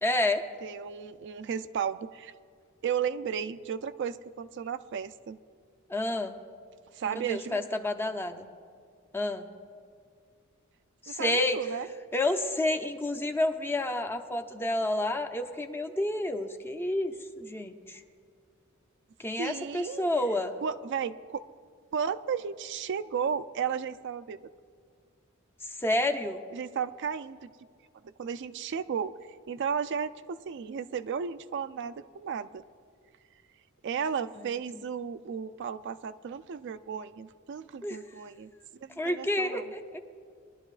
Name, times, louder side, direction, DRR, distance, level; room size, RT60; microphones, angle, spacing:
voice 1, 0.0-0.4 5.9-6.4 7.2-8.5 9.1-9.5 11.0-11.6 12.1-18.0 19.2-20.5 25.8-26.4 37.8-38.0 39.0-40.0, left 1 dB, 10° left, 5 dB, 0.5 m, -29 dB
voice 2, 0.6-2.3 2.8-5.4 6.9-7.7 11.1-11.9 19.4-20.1 20.6-21.4 21.9-24.4 26.5-27.5 28.0-29.2 29.5-32.6 33.8-38.5 38.8-39.7, right 7 dB, 55° right, 14 dB, 0.4 m, -34 dB
21.5 x 11.5 x 2.4 m, 2.1 s
head